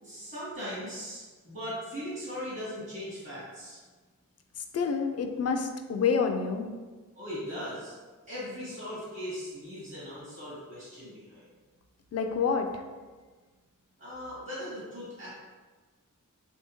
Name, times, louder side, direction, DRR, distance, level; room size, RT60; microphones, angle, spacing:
voice 1, 0.0-3.8 7.1-7.9 8.3-11.5 14.0-15.4, equal, 40° right, -10 dB, 1.5 m, -39 dB
voice 2, 4.7-6.7 12.1-12.8, left 5 dB, 50° left, 5 dB, 0.4 m, -28 dB
3.5 x 3.4 x 3.0 m, 1.4 s
wide cardioid pair, 110°, 32 cm